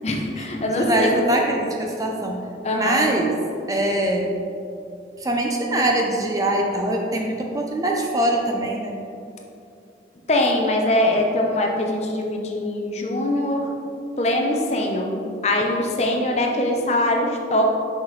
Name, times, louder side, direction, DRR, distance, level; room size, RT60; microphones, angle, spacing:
voice 1, 0.0-1.2 2.6-3.0 10.3-13.7 14.2-17.7, left 1 dB, 35° left, 1 dB, 0.6 m, -22 dB
voice 2, 0.7-2.4 2.7-3.3 3.7-4.3 5.2-9.0, right 1 dB, 20° right, 0 dB, 0.4 m, -22 dB
6.0 x 5.6 x 3.2 m, 2.6 s
head